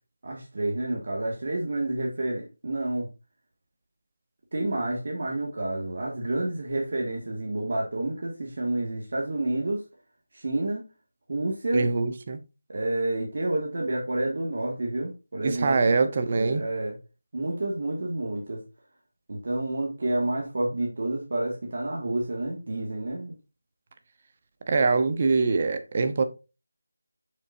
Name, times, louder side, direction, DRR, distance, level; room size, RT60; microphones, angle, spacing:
voice 1, 0.2-3.1 4.5-9.8 10.3-10.9 11.3-11.9 12.7-16.0 16.3-17.0 17.3-18.6 19.3-23.4, right 2 dB, 45° right, 2.0 m, -29 dB
voice 2, 11.7-12.4 15.4-16.6 24.7-26.2, right 4 dB, 30° right, 0.9 m, -23 dB
7.8 x 6.3 x 2.7 m
figure-of-eight pair, 175°, 0 cm